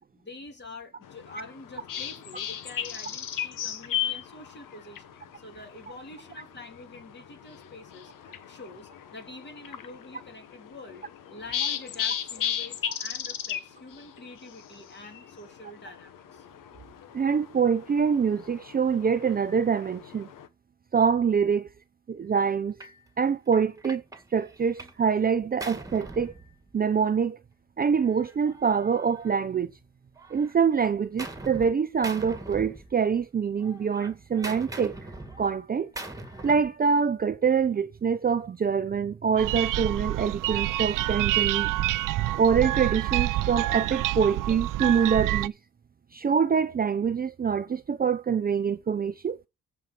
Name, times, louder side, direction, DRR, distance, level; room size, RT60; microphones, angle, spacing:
voice 1, 0.1-8.1 8.5-16.5, left 2 dB, 35° left, 3.2 m, -46 dB
sound 1, 1.0-20.5, left 9 dB, 80° left, 1.3 m, -37 dB
voice 2, 17.1-20.3 20.9-21.7 22.1-22.8 23.2-24.0 24.3-26.3 26.7-27.4 27.8-29.7 30.3-35.0 35.4-35.9 36.4-41.7 42.4-45.5 46.1-49.5, right 6 dB, 30° right, 0.5 m, -25 dB
Gunshot gunfire, 22.8-23.0 23.5-25.0 25.3-27.0 28.0-29.8 30.2-31.7 32.0-33.3 33.6-36.8, right 2 dB, 10° right, 2.0 m, -42 dB
sound 2, 39.4-45.5, right 15 dB, 75° right, 0.5 m, -27 dB
14.0 x 4.7 x 5.8 m
cardioid pair, 120°, 32 cm